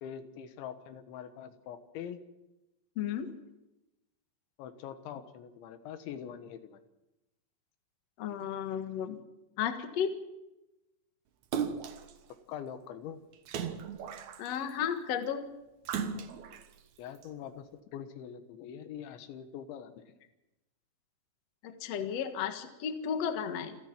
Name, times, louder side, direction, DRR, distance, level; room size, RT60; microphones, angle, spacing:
voice 1, 0.0-2.2 4.6-6.8 12.5-13.2 17.0-20.2, left 9 dB, 85° left, 9 dB, 3.8 m, -44 dB
voice 2, 3.0-3.3 8.2-9.2 9.6-10.1 14.4-15.5 21.6-23.8, left 8 dB, 55° left, 7 dB, 1.9 m, -33 dB
Splash splatter, 11.5-12.1 13.5-14.7 15.8-16.6 17.2-17.3, right 7 dB, 70° right, 1.8 m, -36 dB
28.0 x 10.5 x 9.5 m, 0.98 s
omnidirectional pair, 5.2 m